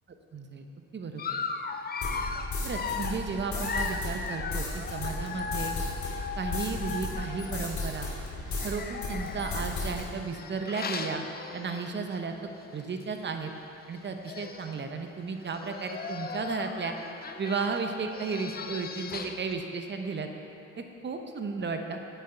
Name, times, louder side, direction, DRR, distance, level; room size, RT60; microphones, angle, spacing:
voice 1, 0.3-0.6 0.9-1.4 2.6-5.8 6.4-8.1 8.6-11.2 11.5-13.5 13.9-16.9 17.4-20.3 21.0-22.0, right 4 dB, 35° right, 5 dB, 0.9 m, -34 dB
Dog, 1.2-7.8 8.5-12.1 12.6-12.7 13.0-13.1 14.0-14.1 14.2-14.8 15.4-19.5, left 5 dB, 30° left, 0.5 m, -37 dB
sound 1, 2.0-8.7 9.0-10.0, left 2 dB, 70° left, 2.4 m, -35 dB
9.3 x 7.5 x 4.6 m, 2.7 s
cardioid pair, 90°, 30 cm